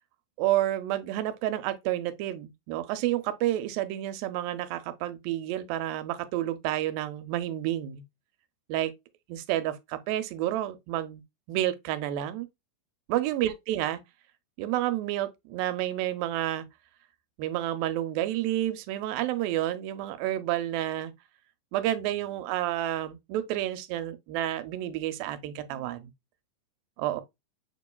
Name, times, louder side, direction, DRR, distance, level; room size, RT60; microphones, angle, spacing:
voice 1, 0.4-8.0 8.7-8.9 9.3-11.2 11.5-12.5 13.1-14.0 14.6-16.7 17.4-21.1 21.7-26.1 27.0-27.2, right 13 dB, 90° right, 2.3 m, -30 dB
6.6 x 3.0 x 2.2 m
omnidirectional pair, 4.0 m